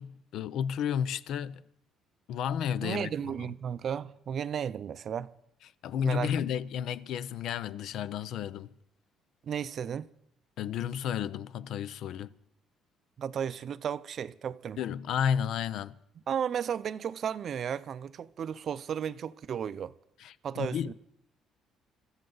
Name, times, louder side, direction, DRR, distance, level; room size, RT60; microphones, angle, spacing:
voice 1, 0.0-1.6 2.3-3.3 5.8-8.7 10.6-12.3 14.8-15.9 20.2-20.9, left 8 dB, 70° left, 0.5 m, -32 dB
voice 2, 2.8-5.3 6.0-6.3 9.4-10.1 13.2-14.8 16.3-19.9 20.4-20.9, right 8 dB, 45° right, 0.5 m, -34 dB
24.5 x 14.0 x 3.9 m
cardioid pair, 125°, 0 cm